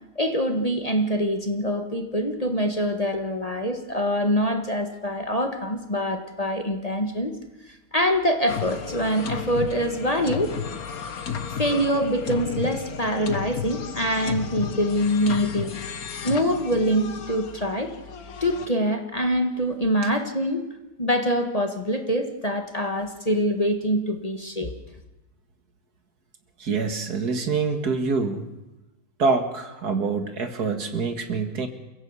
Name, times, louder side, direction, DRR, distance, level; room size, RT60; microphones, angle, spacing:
voice 1, 0.2-7.3 7.7-10.5 11.6-15.8 16.2-17.9 18.4-20.6 21.0-24.7, equal, 20° left, 5 dB, 1.8 m, -24 dB
sound 1, 8.5-18.7, left 7 dB, 60° left, 1.7 m, -33 dB
voice 2, 26.6-28.5 29.2-31.7, right 4 dB, 65° right, 7 dB, 2.4 m, -25 dB
29.0 x 16.0 x 8.3 m, 1.0 s
omnidirectional pair, 1.8 m